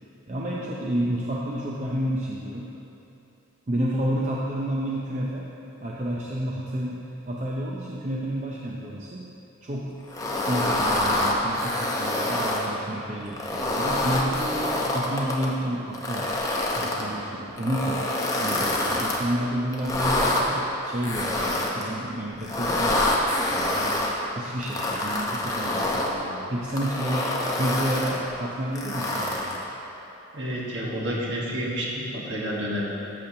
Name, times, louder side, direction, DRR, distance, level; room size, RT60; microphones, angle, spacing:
voice 1, 0.3-2.7 3.7-5.5 5.8-9.3 9.6-10.1 10.5-18.1 18.4-23.1 23.5-24.0 24.4-29.6, right 1 dB, 35° right, -4 dB, 0.6 m, -30 dB
sound 1, 10.1-12.7 13.3-15.5 15.9-17.0 17.6-19.2 19.7-20.4 21.0-21.9 22.4-24.1 24.6-26.1 26.6-28.2 28.8-29.6, left 1 dB, 15° left, 0.7 m, -26 dB
voice 2, 30.3-32.9, equal, 60° right, -4 dB, 1.6 m, -29 dB
13.5 x 6.7 x 2.9 m, 3.0 s
head